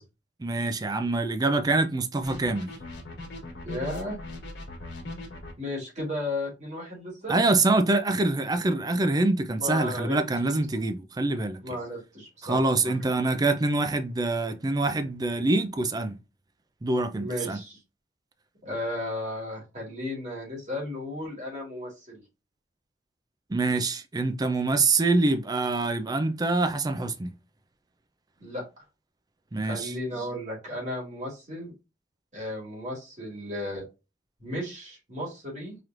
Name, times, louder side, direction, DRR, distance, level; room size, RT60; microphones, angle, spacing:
voice 1, 0.4-2.7 7.3-11.6 12.4-16.2 16.8-17.6 23.5-27.3 29.5-29.9, right 2 dB, 20° right, 0.4 m, -25 dB
sound 1, 2.2-5.5, left 2 dB, 60° left, 1.4 m, -39 dB
voice 2, 3.6-4.2 5.6-7.4 9.5-10.2 11.6-13.0 17.1-17.8 18.6-22.2 28.4-28.6 29.6-31.7 32.3-33.8 34.4-35.8, left 1 dB, 40° right, 2.5 m, -34 dB
4.9 x 3.0 x 2.5 m
head